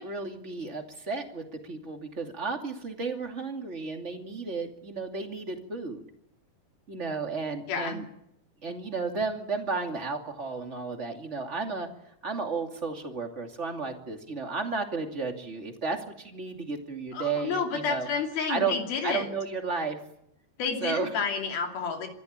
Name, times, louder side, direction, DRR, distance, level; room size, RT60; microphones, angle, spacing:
voice 1, 0.0-6.0 6.9-8.0 8.6-11.9 12.2-18.1 18.5-18.8 19.0-20.0 20.8-21.1, right 4 dB, 20° right, 4 dB, 2.2 m, -33 dB
voice 2, 7.7-8.0 17.1-19.3 20.6-22.1, left 5 dB, 70° left, 4 dB, 4.5 m, -30 dB
25.5 x 14.5 x 8.9 m, 0.78 s
omnidirectional pair, 4.6 m